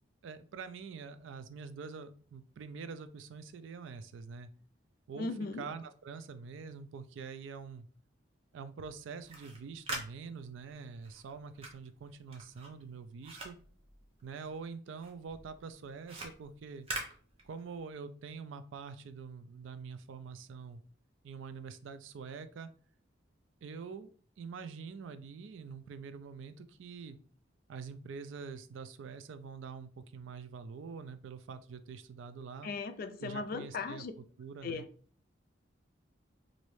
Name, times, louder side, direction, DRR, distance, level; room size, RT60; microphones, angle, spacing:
voice 1, 0.2-4.5 5.1-5.3 5.6-7.9 8.5-13.6 14.2-16.9 17.4-20.8 21.2-22.7 23.6-24.1 24.4-27.2 27.7-32.7 33.2-34.8, right 5 dB, 70° right, 0.3 m, -45 dB
voice 2, 5.2-5.7 32.6-34.1 34.6-34.9, left 4 dB, 45° left, 0.3 m, -37 dB
sound 1, 9.1-14.7 15.0-17.9, right 2 dB, 30° right, 0.6 m, -45 dB
3.0 x 2.6 x 3.1 m
head